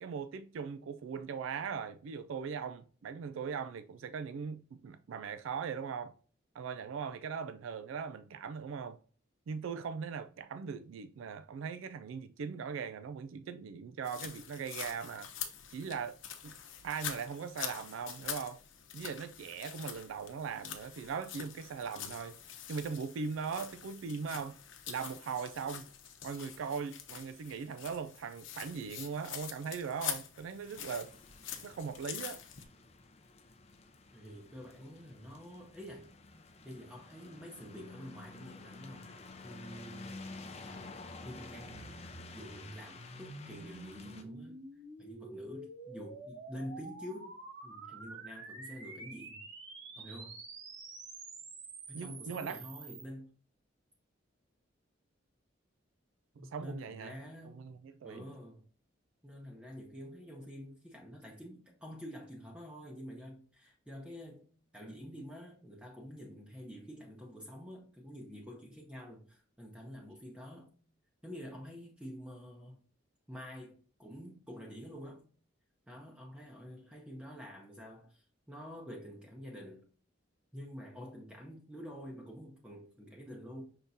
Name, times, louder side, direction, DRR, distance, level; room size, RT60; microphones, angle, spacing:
voice 1, 0.0-6.1 6.5-9.0 9.5-15.3 15.7-16.2 16.4-16.5 16.8-18.6 18.9-22.4 22.7-24.6 24.9-25.9 26.2-31.1 31.6-32.4 51.9-52.6 56.4-57.2 57.5-58.2, right 6 dB, 85° right, 0.3 m, -40 dB
sound 1, 14.0-32.6, left 9 dB, 75° left, 0.8 m, -45 dB
sound 2, 30.7-44.2, left 3 dB, 35° left, 0.5 m, -51 dB
voice 2, 34.1-36.1 36.6-40.2 40.6-41.0 41.2-41.9 42.3-44.6 45.0-47.4 47.6-49.4 50.0-50.4 51.9-53.3 56.4-57.7 58.0-58.6 59.2-64.5 64.7-70.7 71.2-72.8 73.3-75.2 75.9-79.9 80.5-83.6, equal, 5° right, 0.7 m, -48 dB
sound 3, 41.7-53.0, right 3 dB, 70° right, 1.3 m, -48 dB
5.6 x 3.6 x 2.6 m
head